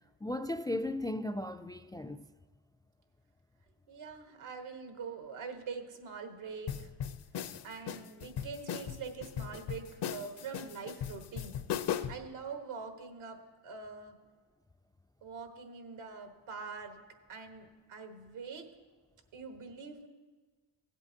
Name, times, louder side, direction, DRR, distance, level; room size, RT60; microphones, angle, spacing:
voice 1, 0.2-2.3, left 1 dB, 10° left, 0.3 m, -36 dB
voice 2, 3.9-6.9 7.6-11.6 12.1-13.4 13.6-14.1 15.2-17.0 17.3-18.7 19.3-20.1, right 5 dB, 80° right, 1.5 m, -44 dB
sound 1, 6.7-12.3, left 9 dB, 55° left, 0.7 m, -38 dB
17.0 x 8.2 x 2.8 m
supercardioid pair, 45°, 49 cm